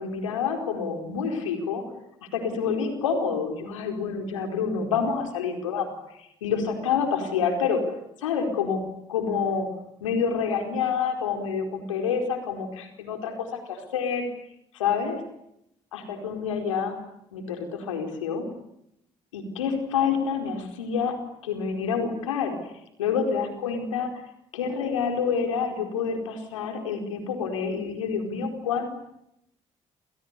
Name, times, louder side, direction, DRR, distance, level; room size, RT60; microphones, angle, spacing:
voice 1, 0.0-1.8 2.3-7.9 8.2-8.8 9.1-9.7 10.0-14.3 14.7-15.2 15.9-17.0 17.3-18.5 19.3-21.2 21.4-22.6 23.0-24.1 24.5-29.0, left 6 dB, 90° left, 5 dB, 4.6 m, -28 dB
30.0 x 28.0 x 6.9 m, 0.80 s
hypercardioid pair, 45°, 16 cm